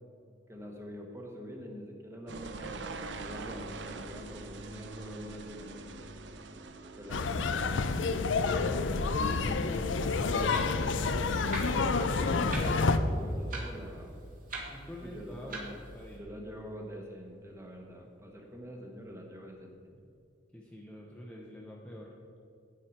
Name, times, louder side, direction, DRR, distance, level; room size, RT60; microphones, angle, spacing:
voice 1, 0.5-6.1 6.9-8.4 12.1-14.2 15.0-15.6 16.2-19.8, equal, 15° right, 1 dB, 1.2 m, -45 dB
sound 1, 2.3-13.6 13.9-14.4 14.9-15.7 15.9-16.0 16.8-16.9 17.1-17.2, right 3 dB, 70° right, 0.6 m, -46 dB
sound 2, 7.1-13.0, left 4 dB, 80° left, 0.5 m, -28 dB
voice 2, 9.1-11.1 14.7-16.3 20.5-22.1, equal, 5° left, -3 dB, 0.8 m, -46 dB
Clock, 10.3-16.2, right 2 dB, 45° right, 1.9 m, -45 dB
9.7 x 8.2 x 4.4 m, 2.6 s
head